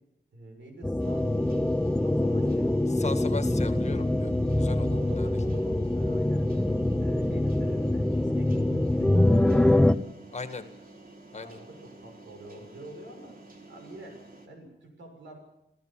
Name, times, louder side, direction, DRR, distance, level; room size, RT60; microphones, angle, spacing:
voice 1, 0.3-1.4 2.0-3.4 4.8-6.7 7.0-9.9 11.4-13.3 13.7-15.4, right 1 dB, 90° right, 3 dB, 6.7 m, -45 dB
sound 1, 0.8-9.9, left 1 dB, 5° left, 0.8 m, -24 dB
sound 2, 1.0-14.5, right 2 dB, 50° right, 3.5 m, -51 dB
voice 2, 2.9-4.9 5.2-5.3 10.3-10.6 11.3-11.6, left 4 dB, 40° left, 9 dB, 1.9 m, -37 dB
27.5 x 15.5 x 7.5 m, 0.86 s
wide cardioid pair, 100°, 19 cm